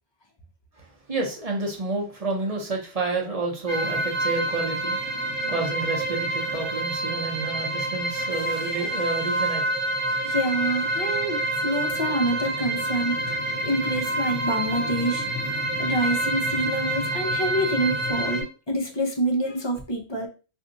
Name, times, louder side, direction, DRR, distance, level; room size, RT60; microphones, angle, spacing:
voice 1, 0.8-5.0 5.5-9.7, right 3 dB, 40° right, 0 dB, 0.8 m, -29 dB
sound 1, 3.7-18.4, right 1 dB, 60° right, 1.1 m, -27 dB
voice 2, 10.2-15.3 15.8-20.3, right 1 dB, 30° left, 1 dB, 0.5 m, -27 dB
2.6 x 2.4 x 3.8 m, 0.33 s
omnidirectional pair, 1.1 m